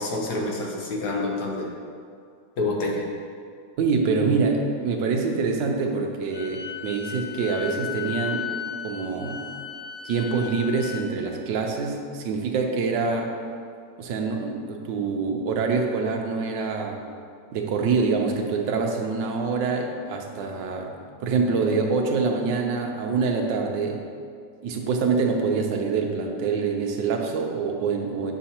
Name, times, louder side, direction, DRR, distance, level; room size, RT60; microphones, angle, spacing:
voice 1, 0.0-1.7 2.6-3.0, left 2 dB, 65° left, -1 dB, 1.5 m, -27 dB
voice 2, 3.8-8.5 8.8-9.4 10.0-13.3 14.0-17.0 17.5-20.9 21.2-24.0 24.6-28.3, right 4 dB, 90° right, 2 dB, 1.5 m, -25 dB
Wind instrument woodwind instrument, 6.3-11.1, left 9 dB, 80° left, 0.6 m, -35 dB
8.8 x 6.1 x 2.9 m, 2.3 s
omnidirectional pair, 1.9 m